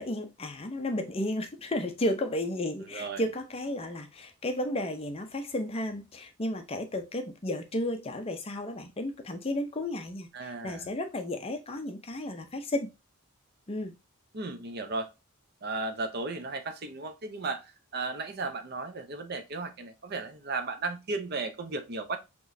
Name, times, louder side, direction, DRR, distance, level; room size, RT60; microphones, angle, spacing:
voice 1, 0.0-12.9 13.7-13.9, left 1 dB, 25° left, 0.5 m, -33 dB
voice 2, 2.9-3.2 10.3-10.9 14.3-15.1 15.6-22.2, right 3 dB, 45° right, 0.7 m, -35 dB
6.0 x 3.0 x 2.6 m
head